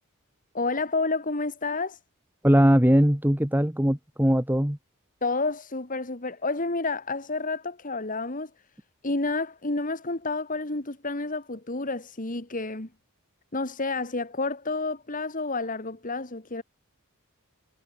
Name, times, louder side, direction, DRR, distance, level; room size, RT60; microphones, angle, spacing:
voice 1, 0.5-2.0 5.2-8.5 9.0-12.9 13.5-16.6, left 3 dB, 40° left, 2.1 m, -30 dB
voice 2, 2.4-4.8, equal, 10° right, 1.5 m, -20 dB
head